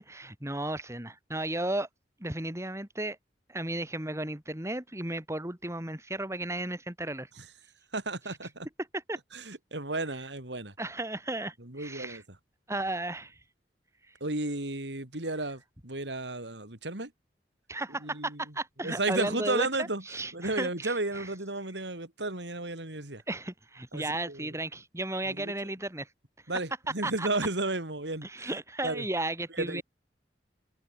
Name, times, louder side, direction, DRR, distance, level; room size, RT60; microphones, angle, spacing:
voice 1, 0.0-1.9 2.2-3.2 3.5-7.3 8.3-8.4 8.8-9.2 10.8-12.2 12.7-13.4 17.7-21.3 23.3-26.1 27.0-27.3 28.2-29.8, right 1 dB, 15° right, 3.8 m, -34 dB
voice 2, 7.9-8.7 9.3-10.7 11.7-12.2 14.2-17.1 18.0-18.4 18.8-20.0 20.3-23.2 23.9-24.5 25.3-25.5 26.5-28.5 28.8-29.0 29.6-29.8, right 2 dB, 80° right, 4.0 m, -33 dB
head